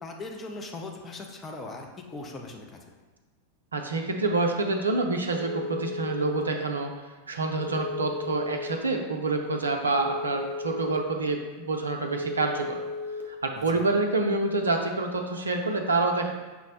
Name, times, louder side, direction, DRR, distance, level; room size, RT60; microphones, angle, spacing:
voice 1, 0.0-2.8 13.5-13.9, left 2 dB, 20° left, 1 dB, 0.6 m, -39 dB
voice 2, 3.7-6.9 7.3-12.8 13.3-16.3, right 3 dB, 75° right, 3 dB, 0.4 m, -27 dB
Telephone, 5.3-6.4 7.6-8.7 9.9-11.0 12.1-13.2, left 3 dB, 80° left, 0.6 m, -34 dB
5.7 x 2.1 x 4.1 m, 1.3 s
figure-of-eight pair, 90°, 0 cm